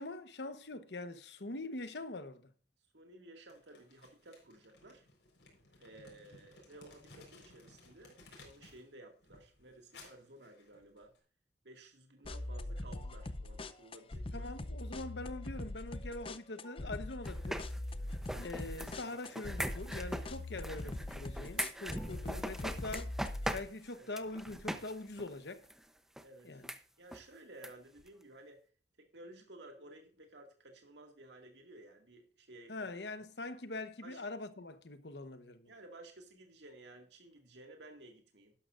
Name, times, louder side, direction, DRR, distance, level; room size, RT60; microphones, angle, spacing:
voice 1, 0.0-2.5 14.3-17.7 18.4-23.1 23.5-25.6 26.4-26.7 32.7-35.7, left 2 dB, 70° left, 1.1 m, -43 dB
voice 2, 2.9-5.1 5.8-11.1 11.6-14.5 20.5-20.7 24.0-24.1 26.2-26.6 27.0-28.6 29.0-32.9 34.0-34.2 35.7-38.5, right 2 dB, 75° right, 2.1 m, -55 dB
Crumpling crinkling, 3.5-8.9 9.2-11.2, left 3 dB, 85° left, 4.4 m, -59 dB
sound 1, 12.2-23.6, left 1 dB, 30° left, 0.6 m, -42 dB
sound 2, 17.2-24.9 25.2-25.3 25.7-25.8 26.2-26.3 26.6-26.8 27.1-27.2 27.6-27.7 28.0-28.1, equal, 5° right, 0.7 m, -41 dB
12.0 x 11.5 x 2.5 m
head